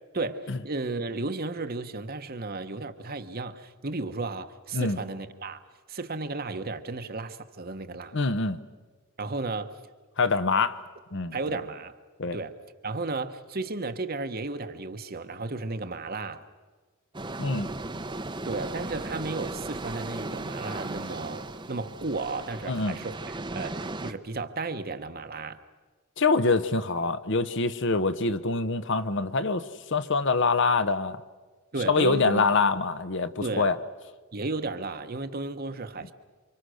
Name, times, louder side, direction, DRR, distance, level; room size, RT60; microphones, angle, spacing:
voice 1, 0.1-5.6 5.9-8.2 9.2-9.8 11.3-11.9 12.3-12.6 12.8-16.5 18.4-25.6 31.7-32.5 33.4-33.7 34.3-36.1, right 3 dB, 40° right, 1.1 m, -34 dB
voice 2, 8.1-8.6 10.2-10.8 11.1-11.4 12.2-12.4 17.4-17.7 22.7-23.0 26.2-29.6 29.9-31.2 31.9-33.8, left 4 dB, 55° left, 0.9 m, -25 dB
sound 1, 17.1-24.1, right 2 dB, 20° right, 0.8 m, -36 dB
28.5 x 25.5 x 6.4 m
head